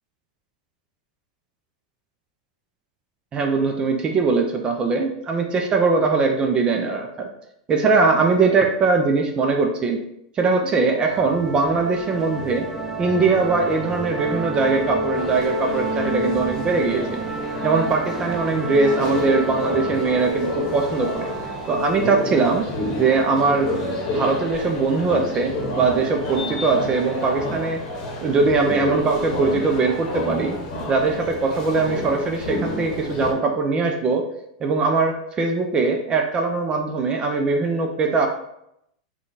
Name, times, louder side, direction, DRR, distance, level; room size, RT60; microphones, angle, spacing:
voice 1, 3.3-7.3 7.7-10.0 10.4-12.7 13.0-17.2 17.6-21.3 21.7-22.7 23.0-23.7 24.1-27.8 28.2-30.6 30.9-34.2 34.6-38.3, right 4 dB, 25° right, 3 dB, 0.5 m, -21 dB
sound 1, 11.1-29.8, equal, 5° right, 1.0 m, -31 dB
sound 2, 15.1-33.3, left 1 dB, 55° left, 0.9 m, -30 dB
3.7 x 2.4 x 3.9 m, 0.78 s
supercardioid pair, 130°, 4 cm